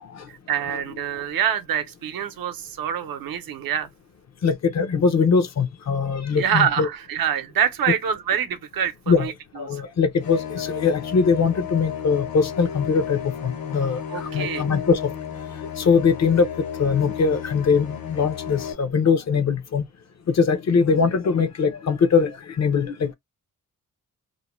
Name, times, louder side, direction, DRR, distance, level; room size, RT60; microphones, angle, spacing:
voice 1, 0.3-3.9 6.4-9.3 9.7-9.8 14.1-14.7, right 8 dB, 85° right, 0.7 m, -25 dB
voice 2, 4.4-6.9 9.1-9.3 9.6-15.1 15.6-16.5 16.8-19.9 20.3-23.1, left 5 dB, 50° left, 0.7 m, -21 dB
sound 1, 10.2-18.7, left 8 dB, 80° left, 1.1 m, -33 dB
2.7 x 2.1 x 3.0 m
wide cardioid pair, 115°, 34 cm